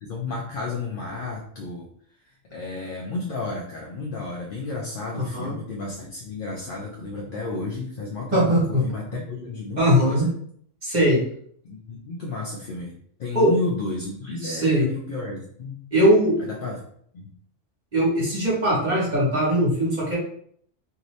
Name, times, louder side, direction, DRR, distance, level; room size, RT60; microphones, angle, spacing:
voice 1, 0.0-1.9 2.3-10.4 11.6-12.9 13.2-15.8 16.4-16.8 17.1-17.3, left 3 dB, 60° left, -1 dB, 0.6 m, -32 dB
voice 2, 5.1-5.5 8.3-8.8 9.8-10.3 10.8-11.2 13.3-13.5 14.4-14.9 15.9-16.3 17.9-20.2, equal, 35° right, -6 dB, 1.2 m, -20 dB
2.7 x 2.6 x 3.1 m, 0.62 s
omnidirectional pair, 1.3 m